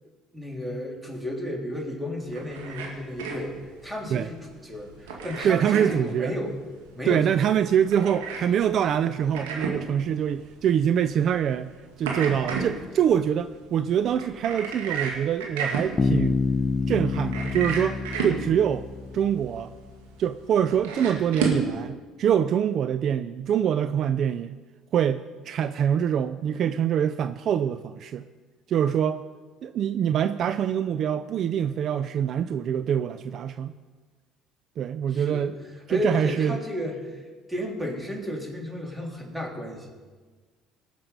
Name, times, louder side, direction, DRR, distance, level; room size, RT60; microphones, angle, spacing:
voice 1, 0.3-3.5 3.8-6.5 6.9-7.3 35.1-35.5 35.9-39.9, left 1 dB, 10° right, -1 dB, 3.6 m, -33 dB
sound 1, 2.2-21.7, right 5 dB, 90° right, 2.1 m, -34 dB
voice 2, 5.4-6.3 7.1-11.7 12.0-16.4 16.9-18.9 19.1-19.7 20.2-24.6 24.9-28.3 28.7-29.3 29.6-33.7 34.8-35.5 35.9-36.6, right 9 dB, 55° right, 12 dB, 0.4 m, -24 dB
Bass guitar, 16.0-19.7, left 4 dB, 25° left, 0.5 m, -27 dB
19.0 x 6.7 x 5.3 m, 1.4 s
hypercardioid pair, 70°, 0 cm